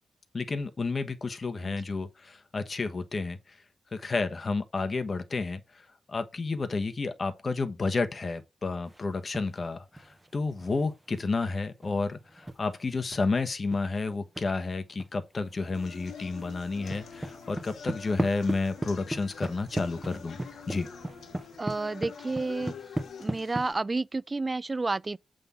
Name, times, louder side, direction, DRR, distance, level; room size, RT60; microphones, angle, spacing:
voice 1, 0.3-3.6 3.9-20.4 20.7-20.9, left 3 dB, 40° left, 1.1 m, -31 dB
sound 1, 8.9-9.7 9.9-14.5 15.0-15.1 15.4-15.9 16.2-23.7, right 1 dB, 15° right, 1.2 m, -37 dB
sound 2, 15.7-23.7, left 7 dB, 80° left, 1.2 m, -46 dB
sound 3, 16.0-22.1, right 5 dB, 85° right, 1.7 m, -58 dB
voice 2, 21.6-22.7 23.2-25.2, right 3 dB, 30° right, 0.3 m, -30 dB
7.7 x 3.7 x 5.6 m
cardioid pair, 85°, 0 cm